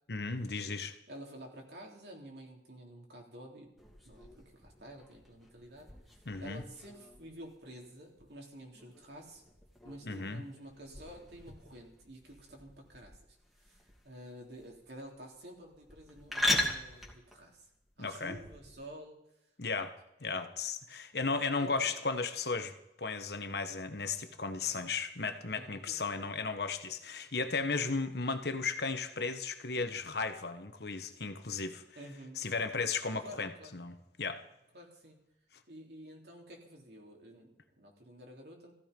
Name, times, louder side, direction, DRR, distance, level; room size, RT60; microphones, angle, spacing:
voice 1, 0.1-0.9 6.3-6.6 10.0-10.4 18.0-18.4 19.6-19.9 20.2-22.7 23.0-31.8 32.4-34.4, left 4 dB, 65° left, 8 dB, 1.3 m, -35 dB
voice 2, 1.1-3.7 4.0-5.9 6.4-9.4 9.8-13.2 13.6-17.7 18.0-19.2 19.7-19.9 21.6-21.9 25.4-26.2 31.9-32.4 33.2-33.8 34.7-35.2 35.7-38.7, equal, 65° right, 0 dB, 3.3 m, -50 dB
sound 1, 3.8-18.8, left 2 dB, ahead, 2.3 m, -40 dB
15.5 x 14.5 x 5.3 m, 0.87 s
head